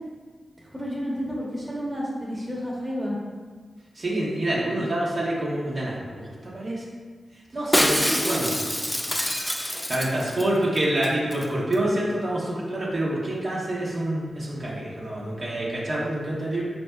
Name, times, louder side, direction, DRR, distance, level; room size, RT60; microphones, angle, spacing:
voice 1, 0.6-3.2 7.9-8.6, equal, 15° right, -5 dB, 0.9 m, -31 dB
voice 2, 3.9-6.8 7.5-8.0 8.2-8.5 9.4-9.5 9.9-16.6, right 1 dB, 55° right, -6 dB, 0.8 m, -27 dB
Shatter, 7.7-10.5 10.8-10.9 11.0-11.4 11.7-11.8, equal, 10° left, 0.3 m, -25 dB
4.3 x 2.6 x 2.2 m, 1.5 s
cardioid pair, 50°, 0 cm